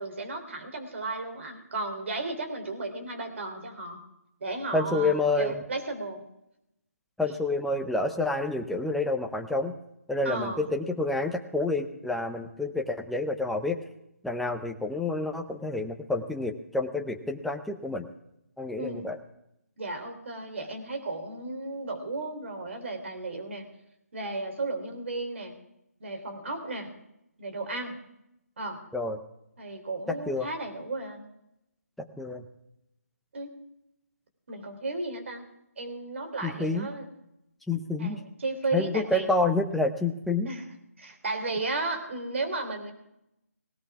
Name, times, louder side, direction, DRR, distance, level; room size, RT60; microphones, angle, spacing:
voice 1, 0.0-4.0 4.4-6.2 10.3-10.7 18.8-19.1 19.8-23.7 24.1-25.5 26.0-26.9 27.4-28.0 28.6-28.8 29.6-31.2 33.3-33.5 34.5-35.4 35.8-37.1 38.0-39.3 40.4-40.7 41.0-42.9, right 2 dB, 50° right, 5 dB, 3.5 m, -34 dB
voice 2, 4.7-5.6 7.2-9.7 10.1-13.8 14.2-18.1 18.6-19.2 28.9-29.2 30.3-30.5 32.0-32.4 36.4-36.9 37.7-38.2 38.7-40.5, left 2 dB, ahead, 3 dB, 0.7 m, -28 dB
18.5 x 18.0 x 3.6 m, 0.84 s
figure-of-eight pair, 160°, 8 cm